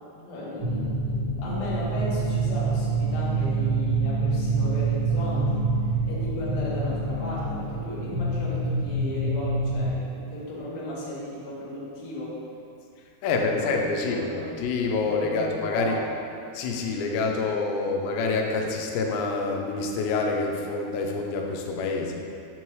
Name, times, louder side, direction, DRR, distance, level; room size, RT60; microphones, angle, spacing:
voice 1, 0.1-12.4 13.3-13.7 14.1-14.5 15.0-16.0, left 1 dB, 65° left, -7 dB, 1.7 m, -36 dB
sound 1, 0.6-9.9, right 3 dB, 85° right, 1.0 m, -26 dB
voice 2, 13.2-14.3 14.6-16.0 16.5-22.1, left 3 dB, 85° left, 1 dB, 2.9 m, -27 dB
6.4 x 6.0 x 3.1 m, 2.5 s
omnidirectional pair, 4.9 m